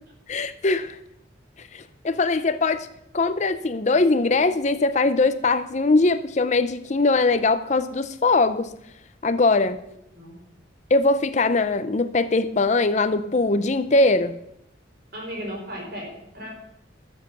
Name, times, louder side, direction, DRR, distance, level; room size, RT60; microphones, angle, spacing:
voice 1, 0.3-1.0 1.6-2.9 3.1-8.7 9.2-9.8 10.9-14.4, left 3 dB, 40° left, 12 dB, 0.6 m, -21 dB
voice 2, 15.1-16.5, equal, 55° right, -2 dB, 5.2 m, -35 dB
13.0 x 7.3 x 6.8 m, 0.78 s
head